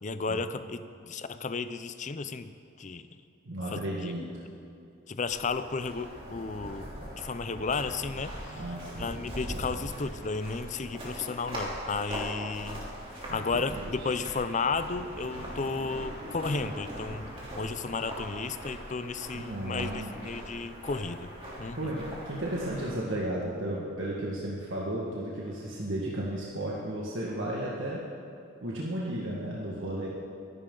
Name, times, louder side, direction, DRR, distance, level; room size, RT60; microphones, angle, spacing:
voice 1, 0.0-3.1 3.7-4.1 5.1-6.9 7.2-8.3 9.0-12.8 13.3-21.3 21.6-21.8, left 4 dB, 35° left, 11 dB, 0.5 m, -33 dB
voice 2, 3.4-4.3 8.5-9.2 13.3-14.1 19.3-20.1 21.7-28.0 28.6-30.1, right 1 dB, 70° right, -5 dB, 1.7 m, -34 dB
sound 1, 5.3-22.9, equal, 25° right, 3.1 m, -41 dB
22.5 x 11.0 x 3.9 m, 2.6 s
head